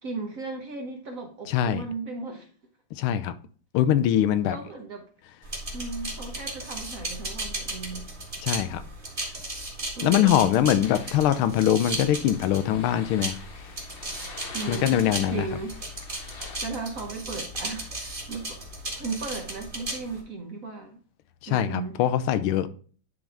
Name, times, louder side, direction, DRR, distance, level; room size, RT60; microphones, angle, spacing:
voice 1, 0.0-2.5 4.4-5.1 5.7-8.1 9.2-9.4 10.0-10.5 14.5-15.0 15.3-15.7 16.4-18.6 19.0-21.0 21.5-22.0, right 4 dB, 50° right, 1.1 m, -36 dB
voice 2, 1.5-1.8 2.9-3.3 3.7-4.6 8.4-8.8 10.0-13.3 14.7-15.4 21.4-22.7, left 11 dB, 85° left, 1.5 m, -23 dB
sound 1, 5.4-20.2, right 1 dB, 25° right, 1.7 m, -36 dB
sound 2, 10.8-16.6, left 4 dB, 70° left, 0.5 m, -46 dB
10.0 x 3.7 x 3.4 m
omnidirectional pair, 2.3 m